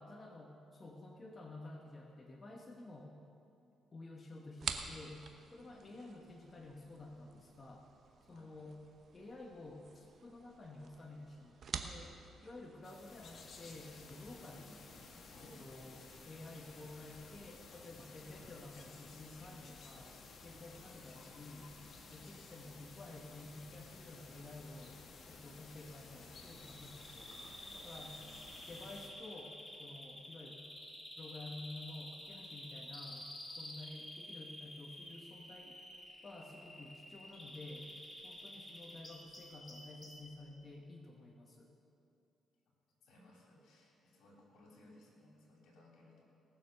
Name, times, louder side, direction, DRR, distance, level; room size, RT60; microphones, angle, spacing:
voice 1, 0.0-3.1 3.9-5.2 5.5-7.9 8.3-8.8 9.1-12.1 12.4-14.9 15.4-20.1 20.4-21.7 22.0-25.0 25.3-27.5 27.7-28.2 28.7-30.6 31.2-35.8 36.2-37.9 38.2-41.7, left 2 dB, 30° left, 1 dB, 1.2 m, -51 dB
sound 1, 4.6-16.2, right 6 dB, 55° right, 0.9 m, -49 dB
sound 2, 12.8-29.1, left 4 dB, 55° left, 1.5 m, -55 dB
voice 2, 15.3-15.6 20.7-20.8 42.6-42.7 43.0-46.2, left 1 dB, 75° left, -1 dB, 3.2 m, -62 dB
Bird vocalization bird call bird song, 26.3-40.3, left 1 dB, 15° left, 2.1 m, -51 dB
18.5 x 7.0 x 6.6 m, 2.7 s
cardioid pair, 90°, 0 cm